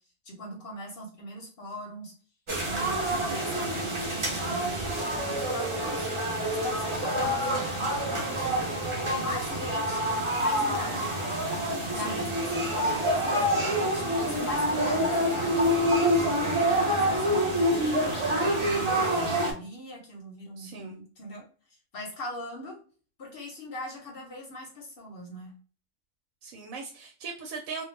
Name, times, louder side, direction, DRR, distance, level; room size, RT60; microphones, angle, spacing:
voice 1, 0.2-2.1 2.6-6.1 6.5-8.7 9.1-10.1 10.4-11.1 11.9-15.6 16.4-21.4 21.9-22.8 23.2-25.5, left 1 dB, 50° left, 0 dB, 0.8 m, -40 dB
sound 1, 2.5-19.5, equal, 40° right, 0.4 m, -27 dB
voice 2, 11.9-12.3 20.6-21.0 26.4-27.8, right 4 dB, 85° right, 2 dB, 1.0 m, -39 dB
2.3 x 2.2 x 3.1 m, 0.40 s
omnidirectional pair, 1.4 m